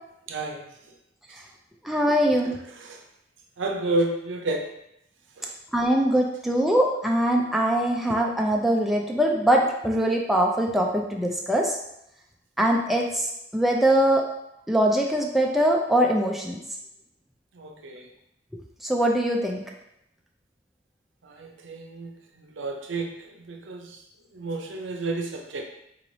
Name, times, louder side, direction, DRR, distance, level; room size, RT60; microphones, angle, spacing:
voice 1, 0.3-0.7 2.8-3.0 3.6-4.7 5.4-5.5 17.5-18.1 21.2-22.1 22.4-24.0 24.3-25.7, right 2 dB, 80° right, 2 dB, 0.6 m, -31 dB
voice 2, 1.8-2.6 5.7-11.8 12.6-14.2 14.7-16.6 18.8-19.6, right 1 dB, ahead, -1 dB, 0.3 m, -22 dB
4.0 x 3.0 x 2.7 m, 0.80 s
head